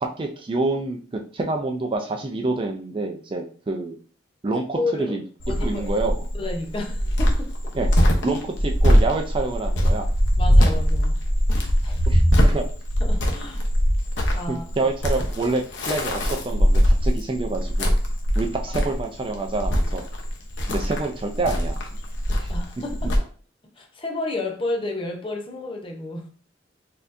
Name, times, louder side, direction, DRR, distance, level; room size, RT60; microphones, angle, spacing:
voice 1, 0.0-4.0 4.4-5.2 5.6-6.3 7.7-7.9 8.2-10.1 12.1-12.6 14.5-17.9 18.4-20.0 20.7-21.8 22.4-22.5, right 3 dB, 30° right, 0.4 m, -27 dB
voice 2, 4.8-5.1 5.5-6.0 6.3-7.7 8.2-8.4 10.4-11.2 11.8-12.1 13.0-13.7 14.3-14.6 20.7-20.8 22.5-23.3 23.7-26.3, left 2 dB, 30° left, 0.6 m, -31 dB
Cricket, 5.4-23.2, equal, 80° left, 0.8 m, -21 dB
4.2 x 2.7 x 2.5 m
head